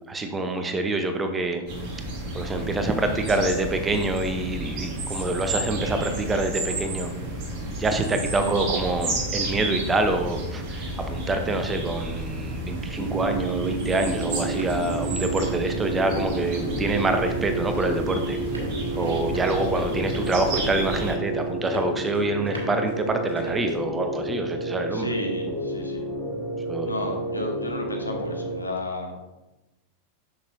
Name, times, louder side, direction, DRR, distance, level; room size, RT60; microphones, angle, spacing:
voice 1, 0.1-1.6 2.3-7.1 7.8-18.4 19.0-25.1 26.7-27.1, right 2 dB, 15° right, 6 dB, 0.7 m, -26 dB
sound 1, 1.7-21.1, right 2 dB, 35° right, 2.0 m, -32 dB
sound 2, 12.9-28.6, right 2 dB, 10° left, 1.4 m, -31 dB
Run, 14.1-23.8, right 1 dB, 75° right, 1.4 m, -43 dB
voice 2, 19.0-19.3 24.9-26.1 26.8-29.1, left 1 dB, 80° left, 2 dB, 0.9 m, -32 dB
7.0 x 6.2 x 2.6 m, 0.99 s
figure-of-eight pair, 90°, 0 cm